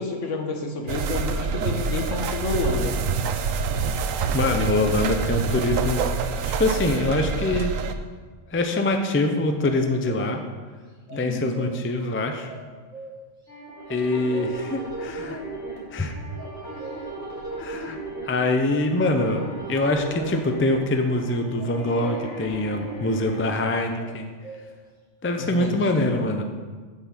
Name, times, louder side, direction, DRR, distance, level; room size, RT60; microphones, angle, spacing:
voice 1, 0.0-3.0 11.1-11.6 25.3-26.2, left 3 dB, 70° left, 3 dB, 1.5 m, -29 dB
sound 1, 0.9-7.9, right 5 dB, 85° right, 1.0 m, -26 dB
voice 2, 4.3-6.0 6.5-7.7 8.5-10.4 11.2-12.5 13.9-15.4 15.9-16.2 17.6-18.0 18.2-19.4 19.7-24.3 25.2-26.4, left 2 dB, 15° left, 5 dB, 0.4 m, -24 dB
sound 2, 9.6-10.6 11.1-12.0 12.5-13.5 13.9-14.8 15.3-15.5 16.4-17.4 18.7-19.6 20.2-21.1 21.6-22.5 24.0-24.9, right 2 dB, 5° right, 3.2 m, -42 dB
sound 3, 13.5-23.3, right 2 dB, 55° left, 2.3 m, -36 dB
7.7 x 6.0 x 7.4 m, 1.5 s
omnidirectional pair, 1.3 m